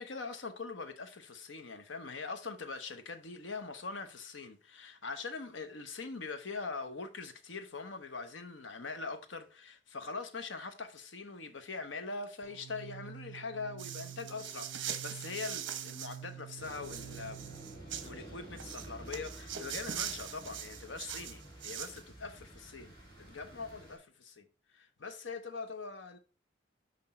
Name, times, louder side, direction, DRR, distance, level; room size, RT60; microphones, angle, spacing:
voice 1, 0.0-17.4 18.0-26.2, left 4 dB, 80° left, 0.9 m, -42 dB
sound 1, 12.4-18.1, right 10 dB, 25° right, 3.5 m, -49 dB
sound 2, 13.8-16.2 16.5-18.1 18.6-22.0, right 9 dB, 75° right, 0.8 m, -42 dB
sound 3, 16.6-24.0, right 1 dB, 20° left, 2.2 m, -50 dB
5.9 x 5.2 x 4.3 m
head